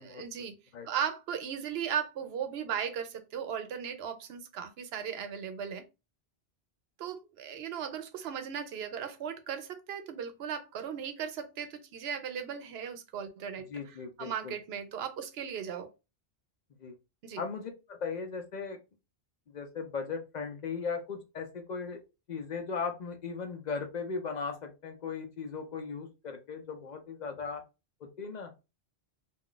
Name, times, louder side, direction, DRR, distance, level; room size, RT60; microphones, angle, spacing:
voice 1, 0.0-0.6 0.8-5.8 7.0-13.7 14.2-15.9 17.2-17.4, right 8 dB, 80° right, 0.8 m, -37 dB
voice 2, 13.7-14.5 16.8-16.9 17.4-18.8 19.5-22.0 22.3-27.6 28.0-28.5, left 5 dB, 55° left, 0.6 m, -37 dB
2.4 x 2.3 x 3.7 m
omnidirectional pair, 1.0 m